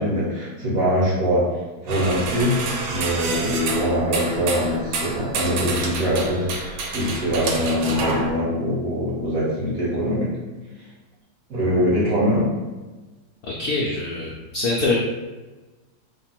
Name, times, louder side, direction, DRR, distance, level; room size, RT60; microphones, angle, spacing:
voice 1, 0.0-1.4 1.8-2.5 2.9-10.3 11.5-12.5, equal, 50° right, -7 dB, 1.4 m, -23 dB
sound 1, 1.9-8.3, right 3 dB, 90° right, 1.4 m, -28 dB
voice 2, 13.6-15.0, left 3 dB, 80° left, -3 dB, 0.8 m, -24 dB
3.3 x 2.2 x 4.3 m, 1.2 s
omnidirectional pair, 2.1 m